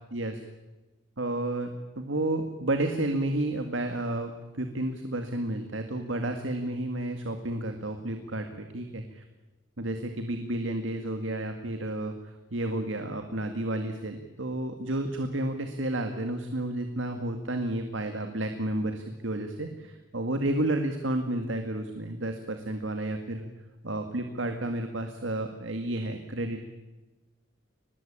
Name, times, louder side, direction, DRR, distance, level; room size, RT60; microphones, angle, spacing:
voice 1, 1.2-9.0 9.8-23.5 23.8-26.6, right 1 dB, 75° right, 6 dB, 2.0 m, -31 dB
23.5 x 20.5 x 8.8 m, 1.1 s
head